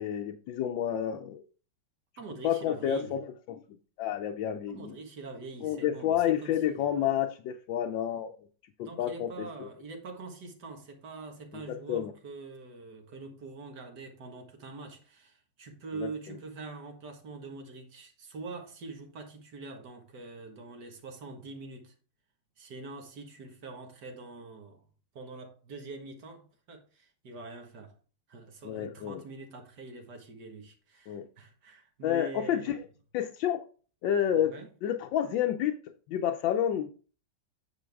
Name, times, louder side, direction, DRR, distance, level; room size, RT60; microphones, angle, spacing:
voice 1, 0.0-1.4 2.4-3.6 4.0-4.9 5.6-8.3 8.8-9.7 11.5-12.1 28.6-29.2 31.1-31.2 32.0-32.7 33.1-33.6 34.0-34.5 34.8-35.8 36.1-36.9, left 10 dB, 80° left, 1.4 m, -29 dB
voice 2, 2.2-3.2 4.7-7.0 8.8-21.9 22.6-24.8 25.2-27.9 28.3-32.8 34.4-34.7, right 3 dB, 60° right, 2.1 m, -44 dB
9.3 x 6.1 x 3.5 m
omnidirectional pair, 2.1 m